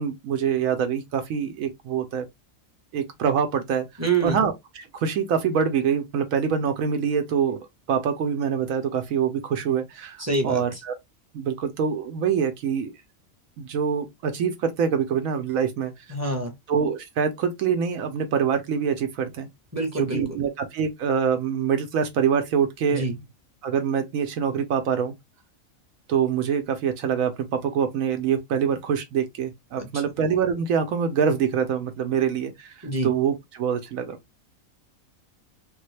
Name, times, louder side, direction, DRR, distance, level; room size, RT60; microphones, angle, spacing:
voice 1, 0.0-2.3 2.9-3.9 4.2-7.6 7.9-10.9 11.3-12.9 13.6-15.9 16.7-19.5 20.1-23.0 23.6-25.1 26.1-34.2, right 7 dB, 75° right, 1.0 m, -25 dB
voice 2, 4.0-4.4 10.2-10.8 16.1-16.5 19.7-20.4 22.9-23.1 29.8-30.0 32.8-33.1, right 3 dB, 15° right, 0.8 m, -26 dB
3.5 x 2.2 x 3.1 m
omnidirectional pair, 1.5 m